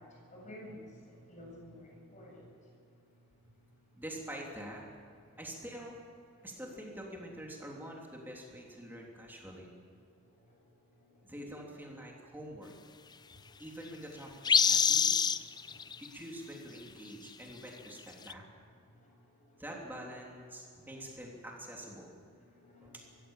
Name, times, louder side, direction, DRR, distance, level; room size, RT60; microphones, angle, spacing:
voice 1, 0.0-2.5 10.4-10.6 11.0-11.2 13.4-13.6 15.5-15.8 18.9-19.6 20.7-20.9 22.5-23.0, left 1 dB, 35° left, -2 dB, 7.3 m, -52 dB
voice 2, 3.9-4.8 5.4-6.0 6.4-9.7 11.2-12.7 13.3-15.1 16.0-18.4 19.6-22.1 22.8-22.9, equal, 10° right, -2 dB, 3.4 m, -46 dB
sound 1, 14.4-16.1 18.3-18.4, left 7 dB, 20° left, 0.4 m, -25 dB
23.5 x 15.5 x 7.5 m, 2.4 s
head